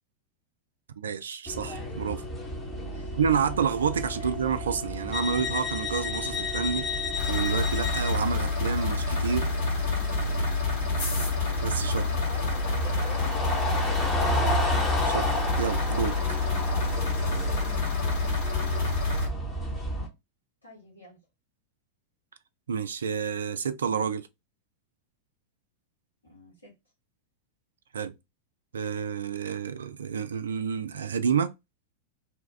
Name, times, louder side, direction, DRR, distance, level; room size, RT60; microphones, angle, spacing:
voice 1, 1.0-2.2 3.1-6.9 7.3-9.5 11.6-12.0 15.0-16.4 22.7-24.3 27.9-28.1 28.7-31.6, right 7 dB, 70° right, 0.3 m, -29 dB
sound 1, 1.5-20.1, left 1 dB, 15° left, 1.0 m, -32 dB
voice 2, 2.9-3.5 4.2-4.3 10.1-10.5 11.1-11.4 11.9-14.4 20.6-21.2 26.2-26.7, left 1 dB, 85° left, 1.5 m, -48 dB
sound 2, 7.2-19.3, left 3 dB, 50° left, 1.6 m, -28 dB
2.9 x 2.3 x 3.2 m
figure-of-eight pair, 90°, 0 cm